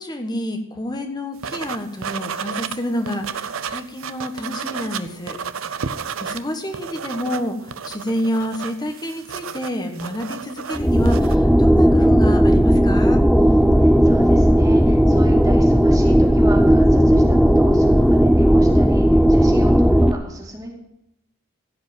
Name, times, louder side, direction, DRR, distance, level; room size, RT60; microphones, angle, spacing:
voice 1, 0.0-5.4 5.7-5.8 6.2-13.2, equal, 20° left, 6 dB, 1.2 m, -28 dB
sound 1, 1.4-2.8 3.1-6.4 6.7-11.4, right 6 dB, 70° right, 0.6 m, -31 dB
sound 2, 10.8-20.1, equal, ahead, 0.4 m, -15 dB
voice 2, 13.3-20.7, right 1 dB, 15° right, -1 dB, 2.5 m, -34 dB
15.5 x 5.1 x 9.0 m, 0.83 s
head